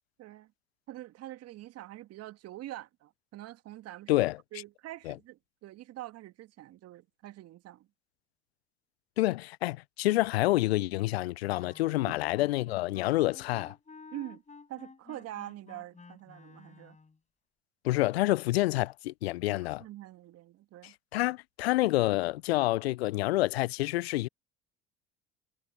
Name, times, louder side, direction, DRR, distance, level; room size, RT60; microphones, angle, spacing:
voice 1, 0.2-0.5 0.9-4.3 4.5-7.9 14.1-14.4 14.7-17.0 19.5-20.9, right 14 dB, 55° right, 1.7 m, -45 dB
voice 2, 9.2-13.8 17.8-19.8 20.8-24.3, left 18 dB, 80° left, 0.5 m, -28 dB
Wind instrument woodwind instrument, 11.4-17.2, left 4 dB, 25° left, 4.9 m, -52 dB
hypercardioid pair, 60°, 31 cm